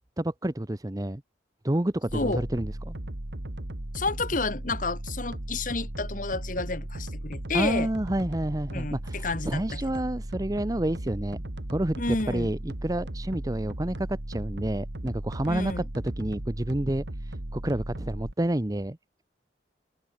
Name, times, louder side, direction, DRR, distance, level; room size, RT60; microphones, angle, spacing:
voice 1, 0.2-1.2 1.6-2.9 7.5-11.4 11.7-19.0, right 1 dB, 20° right, 0.8 m, -29 dB
voice 2, 2.1-2.4 3.9-7.9 8.7-9.6 12.0-12.5 15.5-15.9, left 3 dB, 50° left, 1.7 m, -30 dB
sound 1, 2.1-18.3, right 1 dB, 80° right, 2.2 m, -36 dB
head